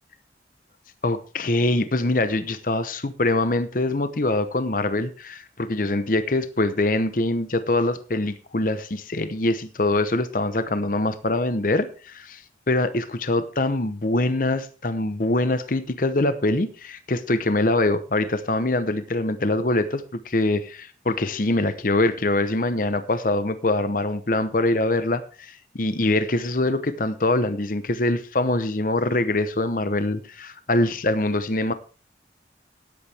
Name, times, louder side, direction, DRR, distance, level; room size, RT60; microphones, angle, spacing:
voice 1, 1.0-12.4 12.7-31.7, left 2 dB, 50° left, 12 dB, 0.9 m, -24 dB
17.0 x 8.4 x 3.4 m, 0.36 s
head